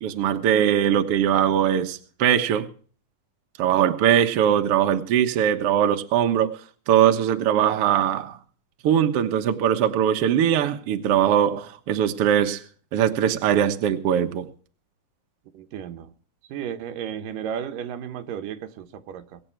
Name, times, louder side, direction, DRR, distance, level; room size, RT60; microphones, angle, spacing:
voice 1, 0.0-2.7 3.6-6.6 6.9-8.4 8.8-12.6 12.9-14.5, right 9 dB, 55° right, 1.8 m, -21 dB
voice 2, 15.5-16.1 16.5-19.4, right 9 dB, 85° right, 2.8 m, -34 dB
22.5 x 9.2 x 4.5 m
omnidirectional pair, 3.8 m